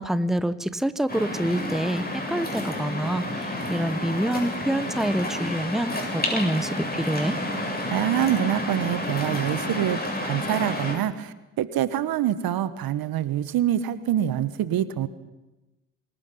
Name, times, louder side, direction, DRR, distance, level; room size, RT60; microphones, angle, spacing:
voice 1, 0.0-7.4, right 1 dB, ahead, 13 dB, 1.2 m, -27 dB
Waves surf, 1.1-11.0, left 1 dB, 25° left, 8.0 m, -30 dB
voice 2, 7.9-15.1, right 11 dB, 60° right, 14 dB, 1.4 m, -25 dB
26.5 x 20.0 x 5.6 m, 1.0 s
hypercardioid pair, 50°, 40 cm